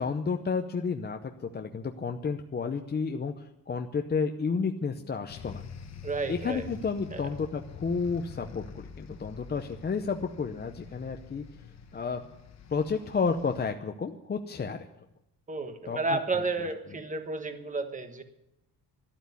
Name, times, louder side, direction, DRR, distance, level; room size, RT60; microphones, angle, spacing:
voice 1, 0.0-5.6 6.3-11.4 11.9-12.2 12.7-14.8 15.9-16.2, left 5 dB, 25° left, 5 dB, 0.7 m, -31 dB
sound 1, 5.3-13.7, left 6 dB, 40° left, 1.2 m, -46 dB
voice 2, 6.0-6.6 7.1-7.3 15.5-18.2, right 3 dB, 20° right, 7 dB, 1.3 m, -32 dB
12.5 x 12.0 x 9.5 m, 0.89 s
cardioid pair, 155°, 39 cm